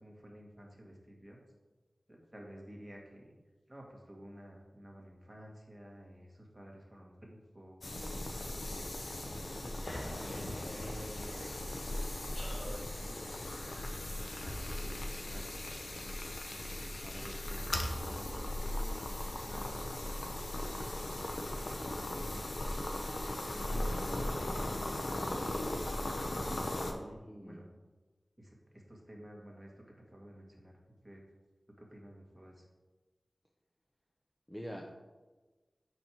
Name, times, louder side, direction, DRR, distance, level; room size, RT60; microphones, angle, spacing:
voice 1, 0.0-1.4 2.1-3.3 3.7-8.0 8.6-9.2 10.0-11.4 12.0-13.4 13.6-13.7 14.4-15.6 16.2-17.7 18.1-21.0 21.8-23.0 23.5-25.7 26.8-27.7 28.4-29.7 30.1-30.7 31.0-31.2 31.8-32.7, equal, 10° right, -2 dB, 2.0 m, -52 dB
sound 1, 7.8-26.9, left 1 dB, 65° left, 1.0 m, -38 dB
sound 2, 9.8-14.9, equal, 35° left, 1.5 m, -47 dB
voice 2, 26.9-27.6 34.5-35.0, equal, 15° left, 1 dB, 0.7 m, -45 dB
6.8 x 4.7 x 5.9 m, 1.2 s
wide cardioid pair, 75°, 0 cm